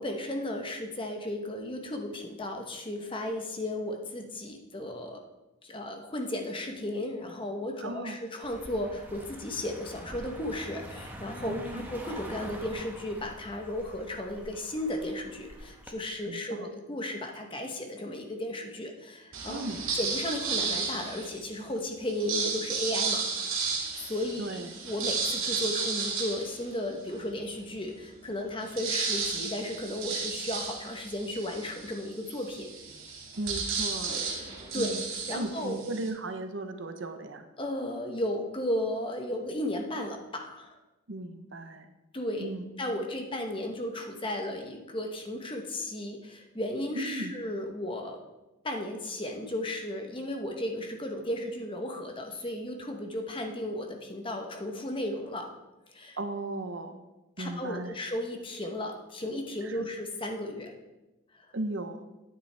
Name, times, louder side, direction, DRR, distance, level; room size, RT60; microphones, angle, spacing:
voice 1, 0.0-5.2 5.6-19.6 19.9-23.2 24.1-32.7 34.3-34.9 35.3-35.8 37.6-40.7 42.1-42.5 42.8-48.2 48.6-55.5 55.9-56.2 57.4-60.7 61.4-61.5, left 1 dB, 25° left, 3 dB, 1.0 m, -34 dB
voice 2, 7.8-8.2 11.4-11.9 16.2-16.7 19.5-19.9 24.4-24.7 33.4-34.2 34.7-35.0 35.3-37.5 41.1-41.9 42.4-42.7 46.9-47.3 56.2-57.1 57.4-58.0 59.6-59.9 61.5-62.1, right 2 dB, 65° right, 7 dB, 0.8 m, -36 dB
Car passing by, 8.4-15.9, right 1 dB, 10° right, 1.0 m, -45 dB
sound 1, 19.3-21.5 22.1-27.3 27.8-27.9 28.1-36.1, right 5 dB, 80° right, 2.1 m, -33 dB
10.0 x 8.9 x 3.4 m, 1.0 s
head